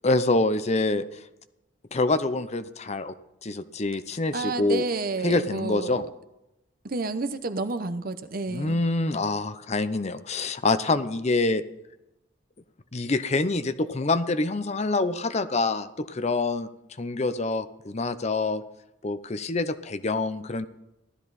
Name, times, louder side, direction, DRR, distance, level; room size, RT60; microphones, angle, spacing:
voice 1, 0.0-1.0 1.9-3.1 3.4-4.8 5.2-6.0 8.5-11.6 12.9-16.7 17.0-18.6 19.0-20.7, left 2 dB, 35° left, 12 dB, 0.7 m, -26 dB
voice 2, 4.3-6.0 6.8-8.8, right 3 dB, 50° right, 10 dB, 0.8 m, -30 dB
15.5 x 12.5 x 4.1 m, 0.89 s
head